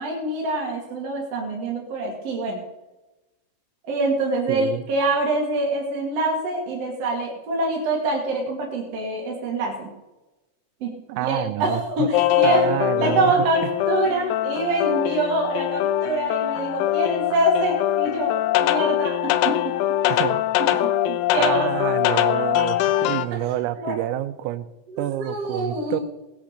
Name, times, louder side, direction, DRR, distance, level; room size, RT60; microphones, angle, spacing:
voice 1, 0.0-2.6 3.8-9.9 10.8-18.3 18.6-19.7 20.8-21.7 22.3-22.6 23.8-23.9 24.9-26.0, right 2 dB, 45° right, -1 dB, 2.2 m, -25 dB
voice 2, 4.5-4.8 11.1-12.1 12.4-13.7 20.1-20.5 20.7-20.8 21.4-24.7 25.0-26.0, right 14 dB, 85° right, 11 dB, 3.4 m, -28 dB
sound 1, 12.1-23.3, left 13 dB, 90° left, 3.5 m, -22 dB
19.0 x 9.0 x 6.6 m, 1.0 s
omnidirectional pair, 6.0 m